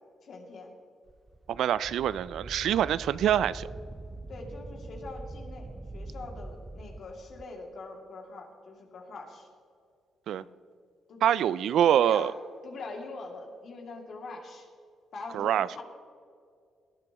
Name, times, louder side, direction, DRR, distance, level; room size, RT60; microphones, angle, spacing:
voice 1, 0.2-0.7 4.3-9.5 10.3-10.5 11.1-11.5 11.9-12.3 12.6-14.7 15.1-15.8, left 3 dB, 60° left, 1 dB, 2.5 m, -43 dB
Wind, 1.1-7.5, right 2 dB, 20° right, 0.6 m, -43 dB
voice 2, 1.5-3.7 10.3-10.4 11.2-12.3 15.3-15.7, right 10 dB, 75° right, 18 dB, 0.3 m, -25 dB
19.0 x 12.5 x 3.0 m, 2.3 s
cardioid pair, 90°, 0 cm